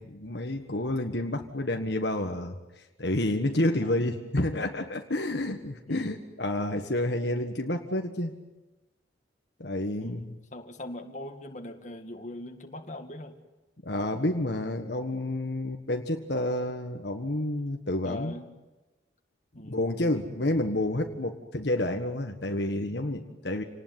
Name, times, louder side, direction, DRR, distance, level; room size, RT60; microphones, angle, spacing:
voice 1, 0.0-8.3 9.6-10.2 13.8-18.3 19.6-23.6, left 1 dB, 60° left, 4 dB, 1.6 m, -29 dB
voice 2, 10.0-13.4 18.0-18.5 19.6-19.8, left 1 dB, 40° left, 4 dB, 2.1 m, -41 dB
28.0 x 19.5 x 9.4 m, 1.1 s
head